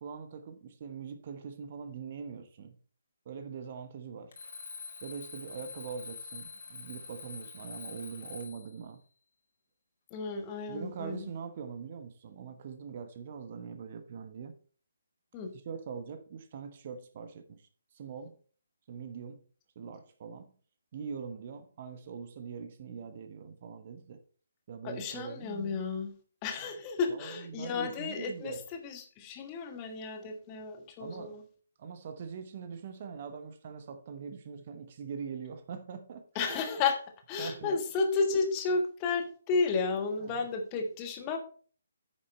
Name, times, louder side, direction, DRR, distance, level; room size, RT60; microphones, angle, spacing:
voice 1, 0.0-2.8 3.2-4.4 5.0-9.0 10.7-14.5 15.6-17.7 17.9-18.4 18.9-19.4 19.7-20.5 20.9-24.2 24.7-25.8 27.1-28.6 31.0-31.4 31.8-36.6 37.4-37.8 40.2-40.5, right 6 dB, 40° right, 1.0 m, -42 dB
Alarm, 4.3-8.7, left 5 dB, 45° left, 2.2 m, -45 dB
voice 2, 10.1-11.3 15.3-15.5 24.8-26.1 26.4-28.6 28.8-31.4 36.3-37.0 37.3-41.4, left 4 dB, 20° left, 1.4 m, -32 dB
9.8 x 6.5 x 4.2 m
figure-of-eight pair, 140°, 0 cm